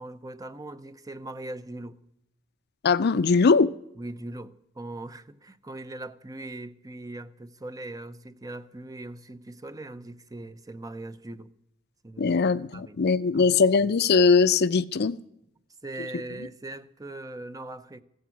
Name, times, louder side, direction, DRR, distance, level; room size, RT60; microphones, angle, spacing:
voice 1, 0.0-2.0 4.0-11.5 12.0-12.4 12.7-13.0 13.3-13.5 15.8-18.0, right 2 dB, 15° right, 0.7 m, -40 dB
voice 2, 2.8-3.7 12.2-15.2, left 4 dB, 50° left, 0.5 m, -21 dB
15.5 x 14.5 x 6.0 m
head